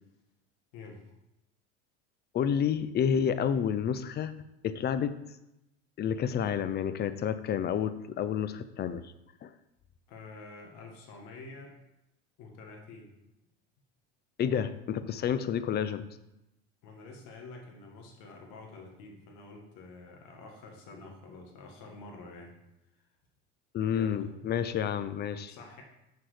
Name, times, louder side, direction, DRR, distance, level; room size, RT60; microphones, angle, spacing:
voice 1, 0.7-1.1 10.1-11.7 12.4-13.1 16.8-22.5 23.9-24.3 25.5-25.8, left 3 dB, 60° left, 1 dB, 1.8 m, -48 dB
voice 2, 2.3-4.3 4.6-5.1 6.0-9.1 9.4-9.5 14.4-16.0 23.7-25.5, left 8 dB, 30° left, 13 dB, 0.5 m, -29 dB
6.2 x 4.6 x 4.8 m, 0.89 s
hypercardioid pair, 90°, 35 cm